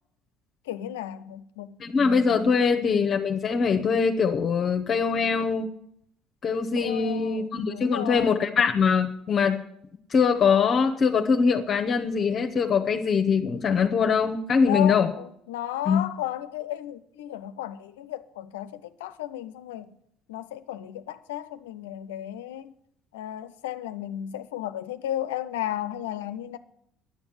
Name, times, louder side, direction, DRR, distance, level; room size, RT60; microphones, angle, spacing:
voice 1, 0.7-2.6 6.8-8.4 14.7-19.9 20.3-22.7 23.1-26.6, left 12 dB, 85° left, 0.6 m, -34 dB
voice 2, 1.8-5.7 6.4-9.6 10.1-15.1 15.9-16.0, left 5 dB, 45° left, 1.0 m, -23 dB
11.0 x 7.0 x 9.6 m
hypercardioid pair, 65°, 0 cm